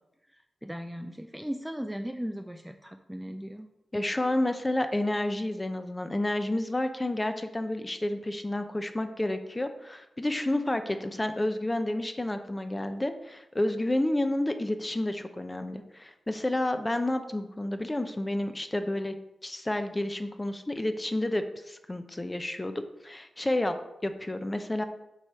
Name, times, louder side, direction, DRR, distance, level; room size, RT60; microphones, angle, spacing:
voice 1, 0.6-3.7, equal, 5° right, 6 dB, 0.5 m, -37 dB
voice 2, 3.9-19.1 19.4-23.7 24.0-24.8, left 1 dB, 20° left, 8 dB, 0.8 m, -30 dB
7.1 x 3.3 x 5.7 m, 0.90 s
cardioid pair, 50°, 0 cm